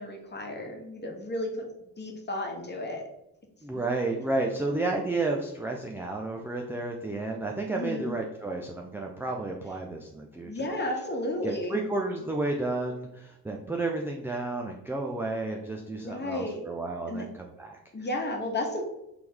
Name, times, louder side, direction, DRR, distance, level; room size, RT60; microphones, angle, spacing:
voice 1, 0.0-1.7 2.0-3.0 3.7-3.8 7.7-8.1 10.4-11.8 16.0-16.6 17.0-17.3 17.9-18.8, left 1 dB, 20° left, 1 dB, 1.3 m, -33 dB
voice 2, 3.6-10.7 11.4-17.8, right 2 dB, 5° right, 1 dB, 0.4 m, -32 dB
4.2 x 3.4 x 3.5 m, 0.84 s
figure-of-eight pair, 45°, 50 cm